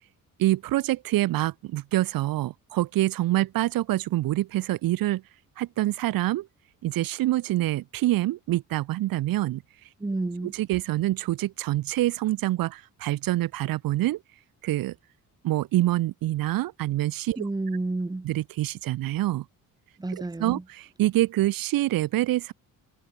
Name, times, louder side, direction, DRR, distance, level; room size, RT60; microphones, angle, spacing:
voice 1, 0.4-5.2 5.6-6.5 6.8-9.6 10.4-14.2 14.6-14.9 15.4-17.4 18.2-19.4 20.1-22.5, right 15 dB, 85° right, 1.1 m, -26 dB
voice 2, 10.0-10.5 17.4-18.3 20.0-20.6, right 2 dB, 10° right, 2.0 m, -30 dB
cardioid pair, 135°, 33 cm